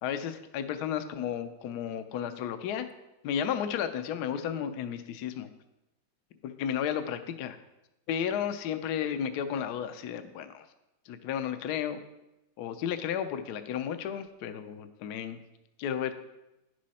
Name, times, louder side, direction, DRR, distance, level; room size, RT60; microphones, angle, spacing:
voice 1, 0.0-2.8 3.2-5.5 6.4-7.6 8.1-10.7 11.1-12.0 12.6-15.4 15.8-16.2, left 9 dB, 65° left, 9 dB, 1.1 m, -33 dB
11.0 x 6.3 x 4.2 m, 0.93 s
omnidirectional pair, 2.2 m